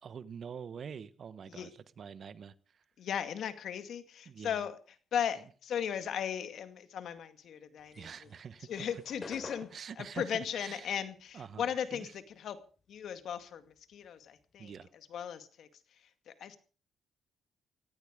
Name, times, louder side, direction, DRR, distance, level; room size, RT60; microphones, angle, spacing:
voice 1, 0.0-2.8 4.2-4.6 5.4-5.5 7.9-9.0 9.7-11.1 11.3-12.1 14.6-14.9, right 7 dB, 50° right, 1.2 m, -46 dB
voice 2, 3.0-4.8 5.1-8.1 8.7-9.7 10.0-12.6 12.9-14.7 15.1-15.7 16.3-16.6, left 8 dB, 70° left, 2.2 m, -37 dB
sound 1, 7.8-12.5 12.8-14.8, left 3 dB, 30° left, 5.0 m, -51 dB
17.5 x 15.0 x 5.2 m
cardioid pair, 90°, 0 cm